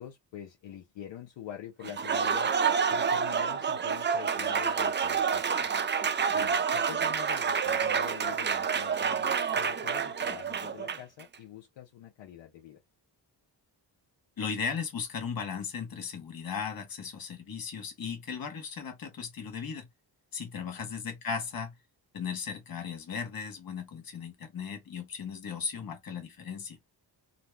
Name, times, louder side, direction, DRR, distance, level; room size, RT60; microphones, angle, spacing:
voice 1, 0.0-2.5 2.9-5.7 6.3-12.8 20.6-20.9, left 10 dB, 85° left, 0.6 m, -45 dB
Applause, 1.8-11.2, right 6 dB, 25° right, 0.3 m, -28 dB
voice 2, 14.4-19.9 20.3-21.7 22.1-26.8, left 6 dB, 50° left, 1.0 m, -36 dB
2.6 x 2.1 x 3.1 m
cardioid pair, 70°, 44 cm